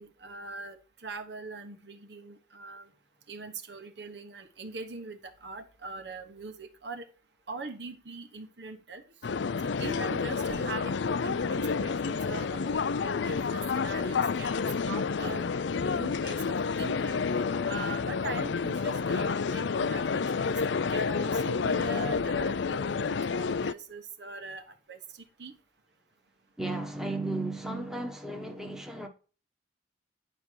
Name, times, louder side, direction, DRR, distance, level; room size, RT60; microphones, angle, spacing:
voice 1, 0.0-2.9 3.3-7.0 7.5-9.0 9.8-14.6 14.9-17.4 17.6-20.6 20.9-25.6, right 3 dB, 65° right, 1.4 m, -42 dB
sound 1, 9.2-23.7, left 5 dB, 80° left, 0.5 m, -29 dB
voice 2, 26.6-29.1, right 2 dB, 5° right, 1.3 m, -34 dB
10.5 x 5.4 x 4.7 m
head